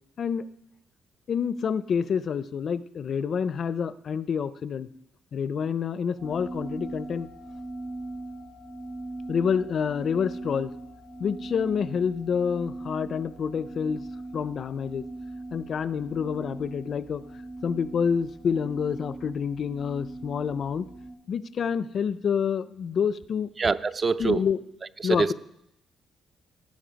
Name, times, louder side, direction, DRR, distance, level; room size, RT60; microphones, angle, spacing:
voice 1, 1.3-4.9 5.3-7.3 9.3-10.7 11.2-14.0 14.3-15.1 15.5-17.2 17.6-20.9 21.3-23.5 24.2-24.6 25.0-25.3, left 7 dB, 55° left, 16 dB, 0.4 m, -28 dB
sound 1, 6.2-21.1, right 2 dB, 55° right, 5.2 m, -40 dB
voice 2, 23.6-24.4 25.0-25.3, right 4 dB, 35° right, 13 dB, 0.4 m, -24 dB
16.5 x 7.3 x 5.2 m, 0.80 s
cardioid pair, 90°, 0 cm